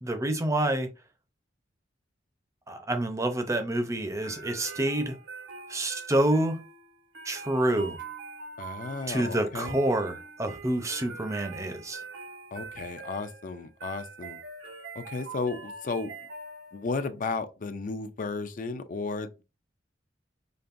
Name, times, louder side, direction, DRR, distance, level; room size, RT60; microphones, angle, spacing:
voice 1, 0.0-0.9 2.7-5.2 5.7-6.6 7.2-8.0 9.1-12.0, right 1 dB, 15° right, 0.6 m, -28 dB
sound 1, 4.2-17.0, right 4 dB, 80° right, 1.2 m, -43 dB
voice 2, 8.6-9.8 12.5-14.4 15.0-16.1 16.7-19.4, left 3 dB, 45° left, 0.4 m, -34 dB
5.2 x 2.5 x 2.5 m
head